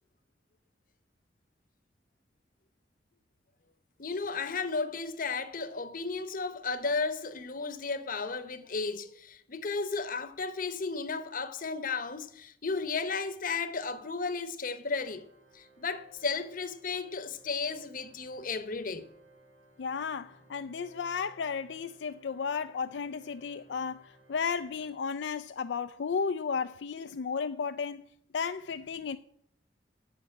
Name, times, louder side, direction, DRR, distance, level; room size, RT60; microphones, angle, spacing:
voice 1, 4.0-15.2 15.5-19.1, left 4 dB, 50° left, 0.9 m, -34 dB
Organ, 14.9-25.7, right 2 dB, 90° right, 4.0 m, -61 dB
voice 2, 19.8-28.0 28.3-29.2, left 5 dB, 75° left, 0.4 m, -34 dB
9.8 x 6.6 x 8.6 m
head